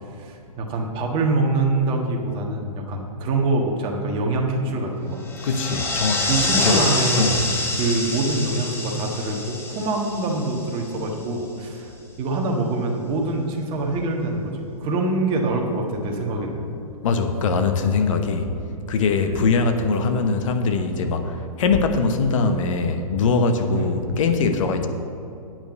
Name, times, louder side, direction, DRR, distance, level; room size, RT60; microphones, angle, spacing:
voice 1, 0.2-5.2 6.3-7.3 7.7-11.9 12.2-16.7 19.3-19.4 23.7-24.0, right 2 dB, 25° right, 1 dB, 1.4 m, -25 dB
sound 1, 5.2-11.1, left 2 dB, 10° left, 1.0 m, -26 dB
voice 2, 5.4-6.8 7.1-7.4 17.0-18.5 18.9-24.9, left 4 dB, 60° left, 7 dB, 1.0 m, -22 dB
9.0 x 5.5 x 7.8 m, 2.7 s
hypercardioid pair, 130°, 19 cm